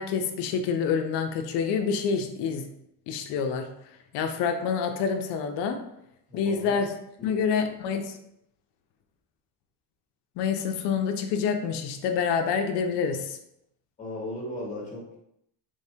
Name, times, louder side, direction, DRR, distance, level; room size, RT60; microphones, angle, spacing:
voice 1, 0.0-2.7 3.1-3.7 4.1-5.8 6.3-8.2 10.4-13.4, left 6 dB, 65° left, 6 dB, 0.6 m, -27 dB
voice 2, 6.3-6.7 7.2-7.3 14.0-15.2, left 1 dB, 15° left, -3 dB, 1.0 m, -36 dB
3.4 x 3.2 x 2.7 m, 0.78 s
cardioid pair, 165°, 45 cm